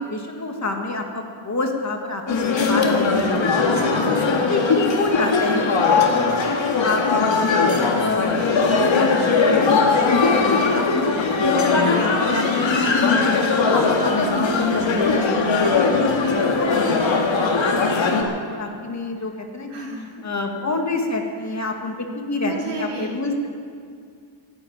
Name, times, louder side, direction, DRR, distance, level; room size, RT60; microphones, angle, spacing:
voice 1, 0.0-3.9 4.5-7.6 8.0-8.3 8.6-17.2 17.5-19.9 20.2-23.5, left 2 dB, 35° left, 3 dB, 1.8 m, -28 dB
sound 1, 2.3-18.2, left 4 dB, 65° left, 2.1 m, -19 dB
voice 2, 3.9-4.5 12.2-12.5 15.2-15.3 19.7-20.3 22.4-23.1, right 3 dB, 80° right, -4 dB, 4.3 m, -34 dB
14.5 x 9.2 x 9.4 m, 2.3 s
wide cardioid pair, 120°, 49 cm